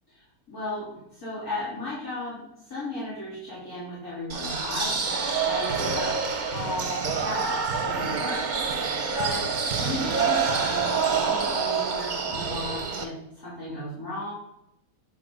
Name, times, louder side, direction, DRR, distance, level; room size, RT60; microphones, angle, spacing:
voice 1, 0.1-6.1 6.5-8.4 9.1-14.3, left 2 dB, 70° left, -10 dB, 3.5 m, -35 dB
sound 1, 4.3-13.0, right 5 dB, 40° right, 0.8 m, -27 dB
9.8 x 3.7 x 5.1 m, 0.80 s
omnidirectional pair, 1.6 m